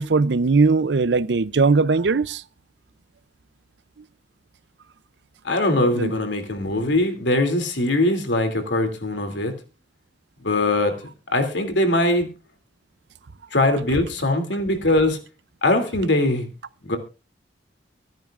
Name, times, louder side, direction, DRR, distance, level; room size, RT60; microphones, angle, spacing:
voice 1, 0.0-2.4 6.0-6.1, right 4 dB, 75° right, 0.6 m, -19 dB
voice 2, 5.4-9.5 10.4-10.9 11.3-12.3 13.5-15.2 15.6-16.5 16.8-17.0, left 1 dB, 85° left, 2.8 m, -21 dB
24.5 x 10.5 x 2.5 m
head